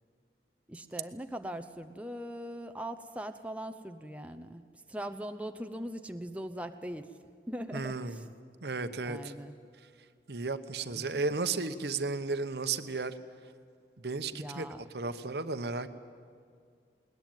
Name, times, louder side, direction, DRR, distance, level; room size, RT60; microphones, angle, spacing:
voice 1, 0.7-4.6 4.9-7.1 7.5-8.3 9.1-9.5 10.9-11.1 14.3-14.8, equal, 10° right, 7 dB, 0.7 m, -40 dB
voice 2, 7.7-8.2 8.6-9.3 10.3-13.1 14.0-14.7 14.9-15.9, right 4 dB, 70° right, 11 dB, 1.0 m, -34 dB
21.0 x 19.5 x 9.2 m, 2.2 s
head